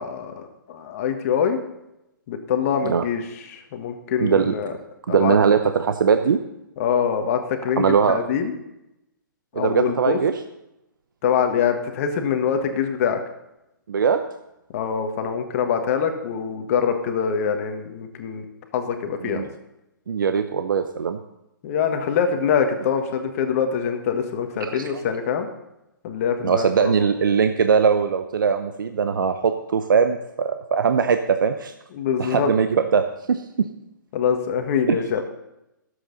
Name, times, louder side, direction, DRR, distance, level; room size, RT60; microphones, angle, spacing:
voice 1, 0.0-1.6 2.3-3.2 3.5-4.7 5.1-5.4 6.8-8.5 9.5-10.2 11.2-13.2 14.7-18.4 18.7-19.4 21.6-25.5 26.0-27.1 31.9-32.5 34.1-35.2, left 7 dB, 45° left, 5 dB, 1.5 m, -24 dB
voice 2, 4.2-4.5 5.1-6.4 7.8-8.2 9.5-10.4 13.9-14.2 19.2-19.5 20.1-21.2 24.6-25.0 26.4-31.7 32.2-33.7 34.9-35.0, right 6 dB, 75° right, 8 dB, 0.8 m, -21 dB
22.5 x 8.0 x 4.0 m, 0.89 s
hypercardioid pair, 135°, 11 cm